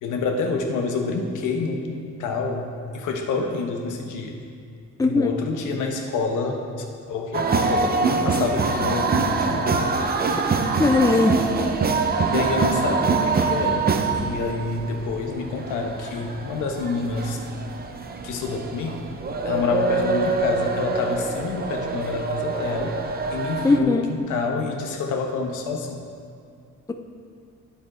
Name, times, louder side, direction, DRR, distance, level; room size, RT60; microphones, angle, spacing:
voice 1, 0.0-4.4 5.0-9.8 12.2-17.4 18.2-19.1 19.4-26.1, left 4 dB, 85° left, 2 dB, 1.2 m, -28 dB
voice 2, 5.0-5.3 10.8-11.4 23.6-24.1, left 3 dB, 10° left, 6 dB, 0.5 m, -19 dB
sound 1, 7.3-23.8, right 4 dB, 30° right, 0.7 m, -25 dB
9.3 x 7.3 x 4.4 m, 2.3 s
cardioid pair, 90°, 30 cm